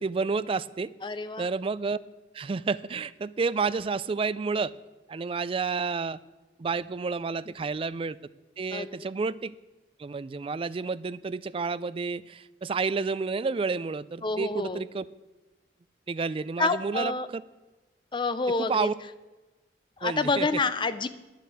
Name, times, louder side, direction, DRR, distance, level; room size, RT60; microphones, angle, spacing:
voice 1, 0.0-0.9 1.4-2.0 2.3-4.7 5.1-6.2 6.6-8.2 8.6-9.5 10.0-15.1 16.1-17.4 18.6-18.9 20.0-20.5, right 4 dB, 30° right, 17 dB, 0.3 m, -30 dB
voice 2, 1.0-1.5 8.7-9.0 14.2-14.8 16.6-17.3 18.1-18.9 20.0-21.1, left 3 dB, 25° left, 12 dB, 0.6 m, -28 dB
10.0 x 7.7 x 8.5 m, 1.1 s
head